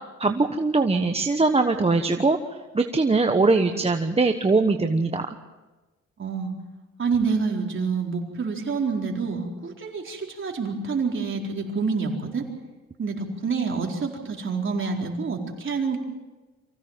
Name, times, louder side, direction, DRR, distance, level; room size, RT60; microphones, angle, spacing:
voice 1, 0.2-2.4 2.7-5.3, right 3 dB, 20° right, 5 dB, 1.1 m, -21 dB
voice 2, 6.2-6.5 7.0-12.5 13.0-16.0, right 5 dB, 40° right, 1 dB, 4.3 m, -27 dB
24.5 x 16.5 x 7.5 m, 1.2 s
cardioid pair, 90°, 30 cm